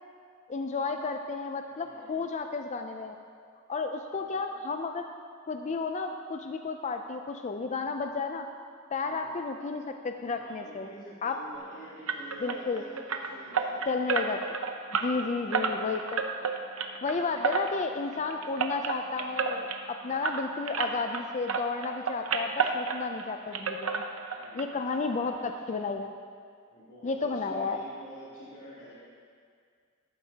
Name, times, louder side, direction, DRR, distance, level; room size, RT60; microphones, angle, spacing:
voice 1, 0.5-3.2 3.7-5.1 5.5-8.5 8.9-10.9 11.2-11.4 12.4-12.8 13.9-14.4 14.9-16.2 17.0-24.0 24.5-26.1 27.0-27.8, left 4 dB, 35° left, 5 dB, 0.4 m, -32 dB
voice 2, 1.7-2.3 4.1-4.7 9.0-9.3 10.2-14.1 14.9-15.4 24.4-25.2 26.7-28.9, equal, 65° left, -9 dB, 2.8 m, -49 dB
sound 1, 12.1-21.2 21.5-23.3 23.5-24.6 24.9-25.0 25.5-25.6 25.9-26.0, right 5 dB, 80° right, 0.7 m, -31 dB
13.0 x 12.0 x 2.8 m, 2.2 s
head